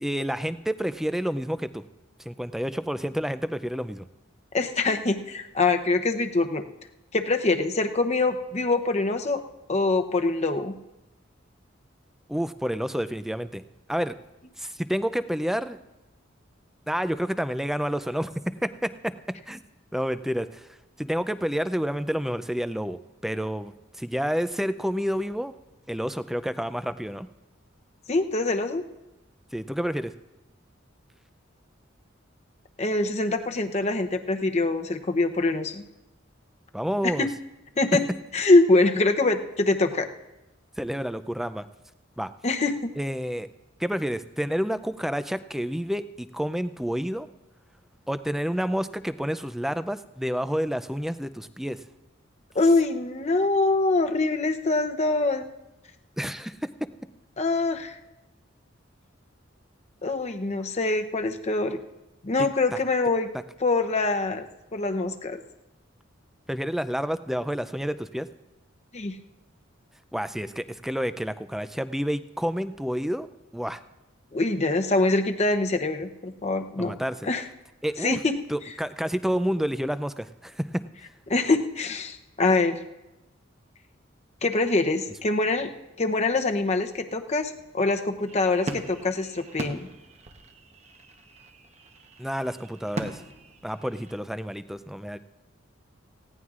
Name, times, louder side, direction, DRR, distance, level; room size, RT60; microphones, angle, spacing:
voice 1, 0.0-1.8 2.3-4.0 12.3-13.6 13.9-14.2 14.6-15.8 16.9-19.6 19.9-20.7 21.0-25.5 25.9-27.3 29.5-30.1 36.7-37.3 40.8-41.7 42.2-42.3 43.0-43.5 43.8-47.3 48.1-51.8 56.2-56.9 62.7-62.8 66.5-68.3 70.1-73.3 73.5-73.8 76.8-77.3 77.8-78.2 78.5-80.8 92.2-93.2 93.6-95.2, equal, ahead, 12 dB, 0.4 m, -29 dB
voice 2, 4.5-6.6 7.1-9.4 9.7-10.7 28.1-28.8 32.8-35.8 37.0-37.1 37.8-38.0 38.3-40.1 42.4-42.9 52.5-55.5 57.4-58.0 60.0-61.8 62.2-63.3 63.6-64.5 64.7-65.4 68.9-69.2 74.3-76.9 77.2-77.4 78.0-78.3 81.3-82.8 84.4-85.7 86.0-89.9, left 3 dB, 35° left, 6 dB, 0.7 m, -24 dB
sound 1, 88.3-94.2, right 2 dB, 35° right, 0.9 m, -40 dB
19.0 x 16.0 x 2.5 m, 0.97 s
head